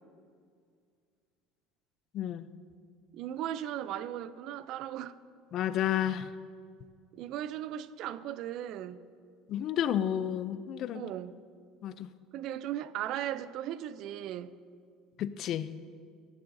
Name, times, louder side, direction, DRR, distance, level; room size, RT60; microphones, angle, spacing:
voice 1, 2.1-2.5 5.5-6.3 9.5-11.1 11.8-12.1 15.2-15.7, left 10 dB, 50° left, 0.4 m, -31 dB
voice 2, 3.1-5.2 7.1-9.1 10.9-11.4 12.3-14.5, right 11 dB, 60° right, 0.3 m, -37 dB
12.5 x 9.5 x 2.7 m
cardioid pair, 140°, 0 cm